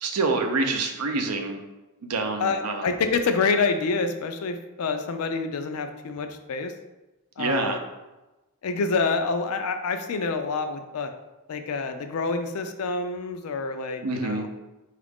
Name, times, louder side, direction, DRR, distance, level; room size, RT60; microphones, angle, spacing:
voice 1, 0.0-1.6 2.0-2.8 7.4-7.8 14.0-14.5, right 3 dB, 80° right, 4 dB, 0.6 m, -26 dB
voice 2, 2.4-6.7 7.4-7.8 8.6-11.1 11.5-14.5, left 4 dB, 70° left, 8 dB, 0.4 m, -27 dB
4.7 x 2.4 x 3.5 m, 1.1 s
head